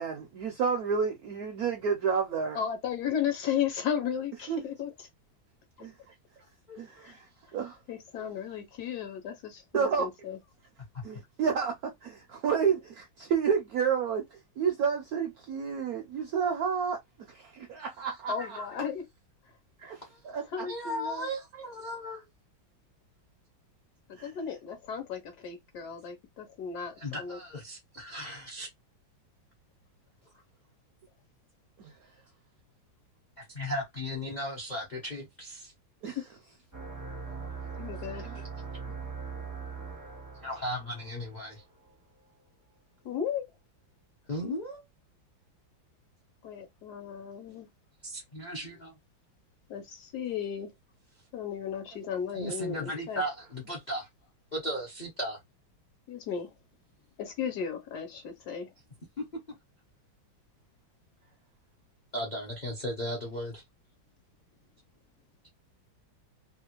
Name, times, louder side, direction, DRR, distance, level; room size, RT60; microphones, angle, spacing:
voice 1, 0.0-2.6 4.5-4.6 5.8-5.9 6.8-7.2 7.5-7.8 9.7-10.1 11.0-14.2 14.6-17.0 17.3-18.6 19.8-20.7 24.2-24.3 31.8-31.9 36.0-36.2 38.2-38.4, right 6 dB, 75° right, 0.8 m, -30 dB
voice 2, 2.5-5.1 7.0-7.1 7.9-10.4 18.3-19.0 20.5-21.3 24.1-27.4 36.2-36.3 37.8-38.3 43.0-43.4 46.4-47.7 49.7-50.7 51.3-53.2 56.1-56.5 57.2-58.7, left 8 dB, 65° left, 1.1 m, -35 dB
voice 3, 20.7-22.3 27.0-28.7 33.4-35.7 40.4-41.6 44.3-44.8 48.0-48.9 52.3-54.1 54.5-55.4 62.1-63.6, equal, 50° left, 0.5 m, -36 dB
sound 1, 36.7-41.9, right 5 dB, 25° right, 0.4 m, -41 dB
3.1 x 2.3 x 2.9 m
omnidirectional pair, 2.1 m